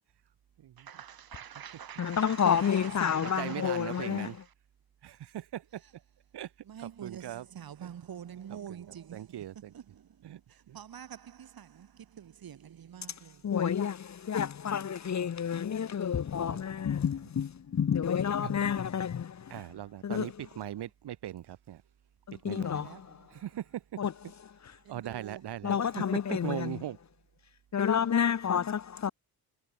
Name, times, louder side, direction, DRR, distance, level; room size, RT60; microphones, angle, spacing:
voice 1, 0.8-4.3 6.7-9.4 9.7-10.1 10.7-13.4 22.6-23.3 24.8-25.4, right 9 dB, 60° right, 1.8 m, -46 dB
voice 2, 2.0-4.3 13.4-19.4 20.0-20.3 22.3-22.9 24.0-24.1 25.6-26.8 27.7-29.1, left 8 dB, 45° left, 0.9 m, -29 dB
voice 3, 3.2-4.4 5.0-5.8 6.3-6.5 6.8-7.5 7.8-7.9 8.5-9.7 10.2-10.4 10.7-10.8 16.5-16.6 18.4-18.5 19.5-21.8 22.4-22.9 23.3-23.8 24.2-24.3 24.9-27.0, right 12 dB, 75° right, 1.4 m, -40 dB
cardioid pair, 65°, 40 cm